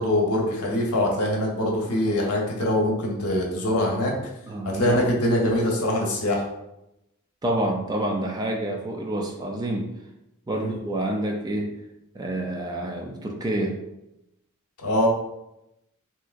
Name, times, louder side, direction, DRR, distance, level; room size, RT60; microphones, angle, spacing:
voice 1, 0.0-4.1 4.7-6.4 10.5-10.7 14.8-15.1, left 1 dB, 85° left, 0 dB, 0.8 m, -23 dB
voice 2, 4.5-5.0 7.4-9.9 10.5-11.8 12.1-13.8, right 1 dB, 20° right, 2 dB, 0.3 m, -28 dB
3.4 x 2.8 x 2.4 m, 0.88 s
head